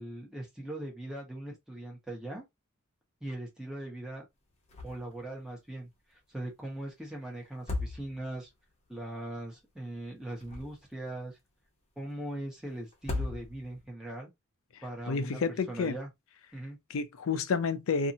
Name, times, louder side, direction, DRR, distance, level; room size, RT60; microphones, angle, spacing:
voice 1, 0.0-2.4 3.2-4.2 4.8-5.9 6.3-8.5 8.9-11.4 12.0-14.3 14.8-15.4 15.7-16.1 16.5-16.8, right 1 dB, 5° right, 1.0 m, -40 dB
sound 1, 4.7-5.2 5.5-5.6 7.4-8.5 10.2-11.1 12.9-13.9, left 2 dB, 30° left, 0.8 m, -37 dB
voice 2, 15.1-16.0 16.9-18.1, left 5 dB, 65° left, 0.4 m, -30 dB
2.6 x 2.5 x 2.7 m
head